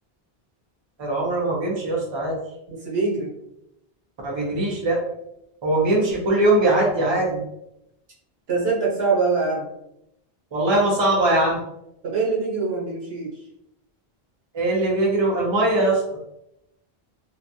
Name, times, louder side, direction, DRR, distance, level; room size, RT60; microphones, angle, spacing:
voice 1, 1.0-2.4 4.2-5.0 5.6-7.4 10.5-11.6 14.5-16.0, right 2 dB, 30° right, -3 dB, 0.6 m, -21 dB
voice 2, 2.7-3.3 8.5-9.7 12.0-13.3, right 4 dB, 80° right, -5 dB, 1.2 m, -23 dB
2.5 x 2.2 x 2.6 m, 0.81 s
omnidirectional pair, 1.0 m